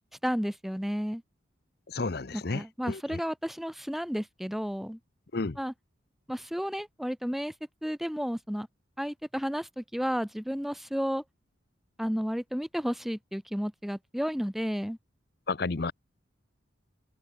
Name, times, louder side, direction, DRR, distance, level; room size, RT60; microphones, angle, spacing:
voice 1, 0.2-1.2 2.3-5.0 5.6-5.7 6.3-7.5 7.8-8.7 9.0-11.2 12.0-15.0, equal, ahead, 0.5 m, -32 dB
voice 2, 1.9-3.2 5.3-5.6 15.5-15.9, left 3 dB, 50° left, 0.7 m, -32 dB
open air
head